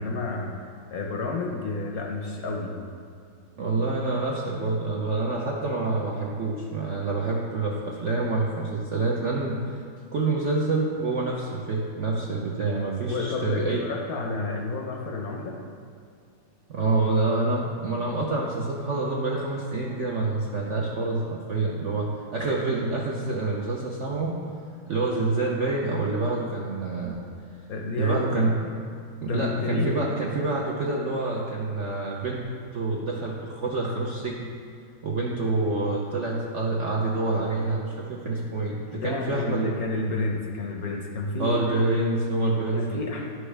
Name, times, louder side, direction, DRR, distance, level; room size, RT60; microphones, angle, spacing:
voice 1, 0.0-2.8 13.1-15.6 27.7-28.5 29.3-30.0 38.9-41.7 42.7-43.2, left 3 dB, 60° left, 1 dB, 1.0 m, -30 dB
voice 2, 3.6-9.8 10.1-13.8 16.7-24.3 24.9-27.2 28.0-28.6 29.2-32.5 32.7-34.5 35.0-39.6 41.4-43.0, right 3 dB, 60° right, -2 dB, 0.7 m, -27 dB
11.0 x 6.3 x 3.3 m, 2.3 s
omnidirectional pair, 2.1 m